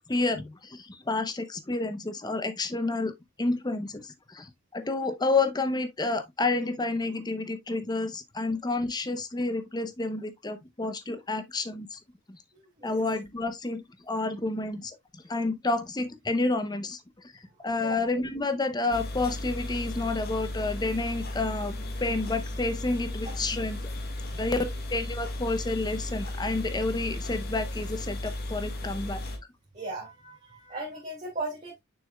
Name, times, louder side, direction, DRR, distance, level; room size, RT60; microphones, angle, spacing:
voice 1, 0.1-3.1 3.4-12.0 12.3-12.4 12.8-15.0 15.3-17.0 17.3-21.7 22.0-23.8 24.3-29.2, left 3 dB, 20° left, 0.7 m, -30 dB
sound 1, 18.9-29.4, left 1 dB, 50° left, 1.7 m, -35 dB
voice 2, 29.7-31.8, right 2 dB, 35° right, 2.2 m, -37 dB
6.8 x 6.2 x 2.2 m
head